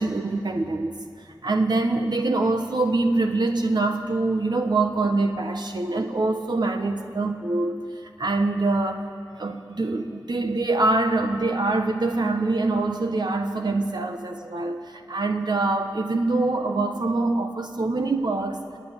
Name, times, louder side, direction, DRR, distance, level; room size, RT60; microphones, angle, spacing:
voice 1, 0.0-9.1 9.4-18.6, right 2 dB, 65° right, 5 dB, 1.2 m, -24 dB
28.0 x 9.6 x 9.8 m, 2.4 s
wide cardioid pair, 55°, 8 cm